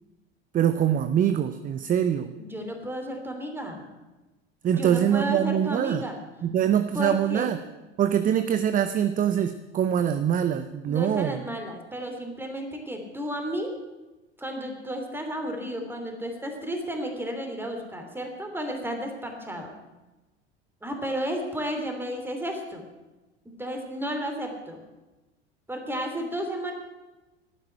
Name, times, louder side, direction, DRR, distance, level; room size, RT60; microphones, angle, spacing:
voice 1, 0.5-2.3 4.6-6.1 6.4-7.6 8.0-11.4, right 9 dB, 25° right, 11 dB, 0.7 m, -24 dB
voice 2, 2.4-3.9 4.8-6.2 6.9-7.5 10.9-13.7 14.4-19.7 20.8-22.8 23.4-24.8 25.7-26.7, equal, 5° right, 3 dB, 3.1 m, -33 dB
12.0 x 9.7 x 9.9 m, 1.1 s
figure-of-eight pair, 75°, 33 cm